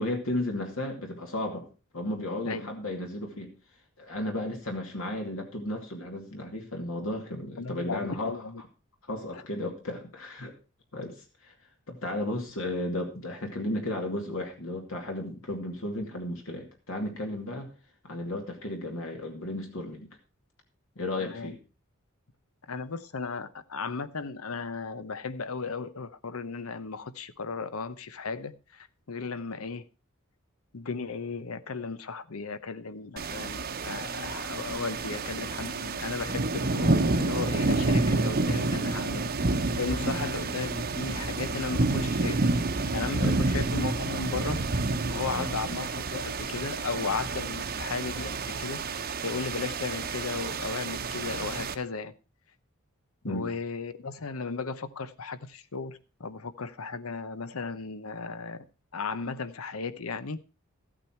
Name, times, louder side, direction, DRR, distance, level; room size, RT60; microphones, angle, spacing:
voice 1, 0.0-1.7 1.9-3.5 4.0-8.4 9.1-10.5 10.9-11.5 11.9-17.7 18.0-20.1 21.0-21.6 40.0-40.2 43.2-43.4 45.3-45.5 53.2-53.5, left 1 dB, 70° left, 2 dB, 2.3 m, -34 dB
voice 2, 7.6-8.6 9.3-9.4 21.2-21.5 22.7-29.8 30.7-39.2 39.5-42.5 42.9-44.6 45.1-48.8 49.2-52.1 53.2-58.6 58.9-60.4, left 4 dB, 90° left, 14 dB, 0.9 m, -35 dB
sound 1, 33.2-51.7, right 3 dB, 45° right, 0.9 m, -29 dB
14.0 x 8.9 x 4.5 m, 0.33 s
head